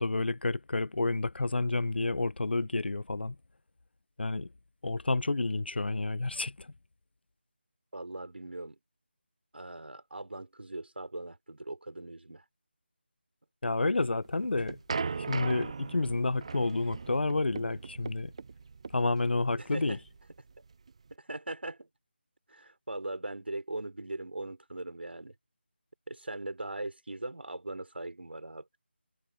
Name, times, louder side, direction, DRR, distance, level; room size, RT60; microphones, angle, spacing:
voice 1, 0.0-3.3 4.2-4.5 4.8-6.7 13.6-14.8 15.2-18.3 18.9-20.0, left 3 dB, 75° left, 0.7 m, -30 dB
voice 2, 7.9-8.8 9.5-12.4 19.6-20.0 21.2-21.9 22.5-25.3 26.1-28.6, right 2 dB, 80° right, 4.6 m, -40 dB
sound 1, 14.2-21.1, right 5 dB, 35° right, 0.6 m, -39 dB
figure-of-eight pair, 165°, 6 cm